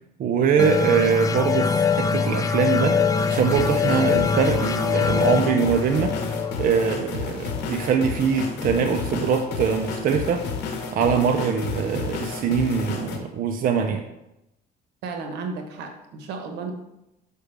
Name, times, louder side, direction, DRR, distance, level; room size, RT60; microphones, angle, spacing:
voice 1, 0.2-3.0 3.3-6.2 6.6-10.4 10.9-14.0, right 6 dB, 55° right, 3 dB, 0.6 m, -23 dB
sound 1, 0.6-7.9, left 6 dB, 20° left, 0.3 m, -24 dB
sound 2, 3.2-13.2, left 5 dB, 90° left, 1.0 m, -31 dB
voice 2, 15.0-16.7, right 4 dB, 85° right, 5 dB, 1.1 m, -33 dB
6.7 x 4.9 x 3.4 m, 0.89 s
cardioid pair, 110°, 17 cm